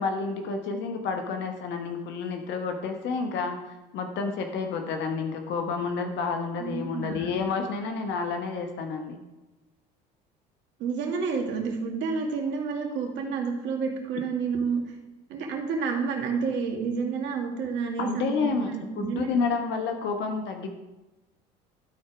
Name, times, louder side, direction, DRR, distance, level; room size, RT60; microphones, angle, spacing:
voice 1, 0.0-3.6 3.9-9.2 18.0-20.7, left 4 dB, 60° left, 5 dB, 1.1 m, -30 dB
voice 2, 6.6-7.4 10.8-15.0 15.3-19.4, right 5 dB, 60° right, 2 dB, 2.0 m, -30 dB
12.5 x 4.3 x 4.9 m, 1.1 s
hypercardioid pair, 75°, 21 cm